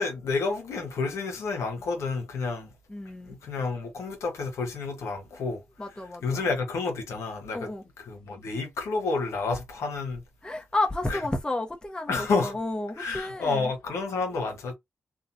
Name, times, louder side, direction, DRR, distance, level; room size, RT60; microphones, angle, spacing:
voice 1, 0.0-2.7 3.2-5.6 6.2-7.7 8.0-10.2 11.1-11.2 12.1-12.6 13.0-14.7, left 4 dB, 80° left, 1.0 m, -30 dB
voice 2, 2.9-3.4 5.8-6.4 7.5-7.8 10.4-13.7, left 2 dB, 15° left, 1.0 m, -31 dB
2.8 x 2.3 x 2.6 m
supercardioid pair, 55°, 5 cm